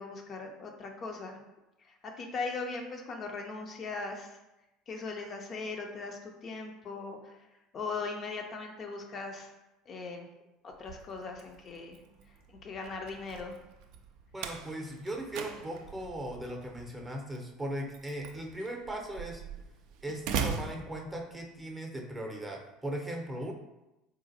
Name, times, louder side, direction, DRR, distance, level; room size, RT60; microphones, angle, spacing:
voice 1, 0.0-1.4 1.8-4.3 4.9-7.5 7.7-9.5 9.9-10.3 10.8-12.0 12.6-13.6, left 4 dB, 40° left, 2 dB, 0.4 m, -39 dB
Slam, 10.7-21.6, right 6 dB, 60° right, 0.3 m, -41 dB
voice 2, 14.3-19.4 20.0-23.5, right 1 dB, 15° right, 1 dB, 0.6 m, -38 dB
3.8 x 2.5 x 2.6 m, 0.94 s
figure-of-eight pair, 65°, 0 cm